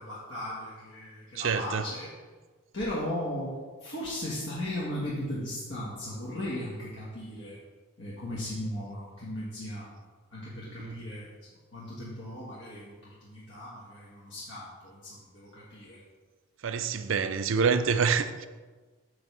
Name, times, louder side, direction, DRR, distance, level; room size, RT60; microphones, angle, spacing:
voice 1, 0.0-2.1 2.7-7.6 8.0-10.0 10.3-11.3 11.7-12.9 13.2-16.0, left 1 dB, 65° left, -8 dB, 1.6 m, -37 dB
voice 2, 1.4-1.8 10.8-11.0 16.6-18.5, right 5 dB, 80° right, 10 dB, 0.5 m, -27 dB
8.8 x 3.4 x 6.1 m, 1.3 s
head